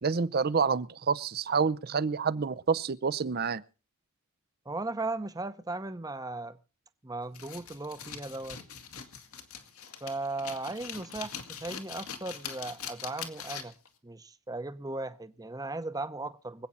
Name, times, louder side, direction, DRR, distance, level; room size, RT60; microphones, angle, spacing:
voice 1, 0.0-3.6, right 5 dB, 45° right, 0.6 m, -28 dB
voice 2, 4.6-6.6 7.0-8.6 10.0-13.7 14.0-16.7, right 2 dB, 15° right, 0.8 m, -37 dB
sound 1, 7.3-13.9, left 7 dB, 80° left, 2.2 m, -42 dB
25.0 x 8.6 x 4.2 m
head